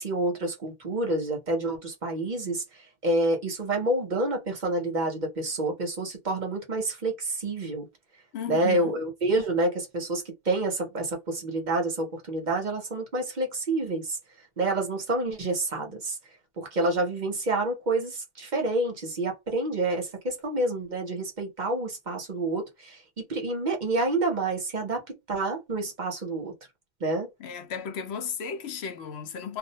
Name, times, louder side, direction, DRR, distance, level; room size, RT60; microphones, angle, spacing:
voice 1, 0.0-7.9 8.5-14.2 14.6-16.2 16.6-26.5 27.0-27.3, right 2 dB, 50° right, 0.9 m, -28 dB
voice 2, 8.3-9.0 27.4-29.6, left 7 dB, 75° left, 0.8 m, -34 dB
2.3 x 2.1 x 2.7 m
omnidirectional pair, 1.1 m